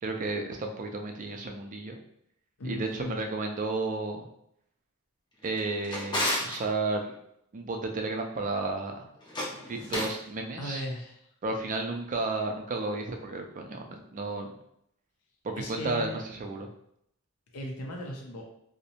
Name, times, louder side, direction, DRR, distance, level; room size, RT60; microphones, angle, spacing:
voice 1, 0.0-2.0 2.6-4.3 5.4-7.1 7.5-9.1 9.7-10.8 11.4-14.5 15.4-16.7, right 3 dB, 35° right, 3 dB, 0.4 m, -32 dB
voice 2, 2.6-3.2 9.8-9.9 10.6-11.2 15.6-16.2 17.5-18.4, left 1 dB, 70° left, 0 dB, 0.5 m, -37 dB
Drawer open or close, 5.4-6.6 9.2-10.2, left 1 dB, 20° left, 0.5 m, -32 dB
2.6 x 2.0 x 2.8 m, 0.74 s
head